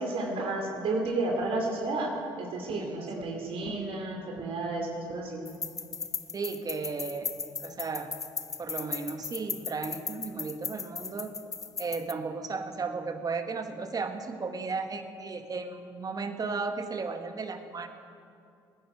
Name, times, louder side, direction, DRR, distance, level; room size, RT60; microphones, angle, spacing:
voice 1, 0.0-5.4, right 2 dB, 55° right, 1 dB, 2.6 m, -32 dB
voice 2, 2.8-3.2 6.3-7.3 7.6-8.1 8.6-11.3 11.8-17.9, right 4 dB, 35° right, 7 dB, 1.4 m, -35 dB
sound 1, 5.5-12.1, left 5 dB, 30° left, 0.7 m, -37 dB
21.0 x 9.6 x 4.8 m, 2.5 s
hypercardioid pair, 60°, 11 cm